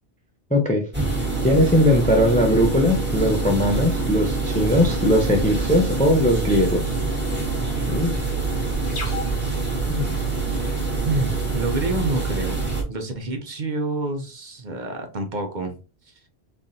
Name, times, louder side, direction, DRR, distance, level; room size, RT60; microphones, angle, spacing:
voice 1, 0.5-0.9 1.4-6.9 7.9-8.2 9.9-10.2, left 1 dB, 10° left, 0.4 m, -20 dB
sound 1, 0.9-12.8, right 4 dB, 10° right, 1.1 m, -25 dB
sound 2, 4.6-10.8, left 2 dB, 75° left, 1.3 m, -37 dB
voice 2, 11.0-15.7 16.1-16.2, right 2 dB, 50° right, 0.7 m, -28 dB
3.7 x 3.3 x 2.7 m
omnidirectional pair, 1.1 m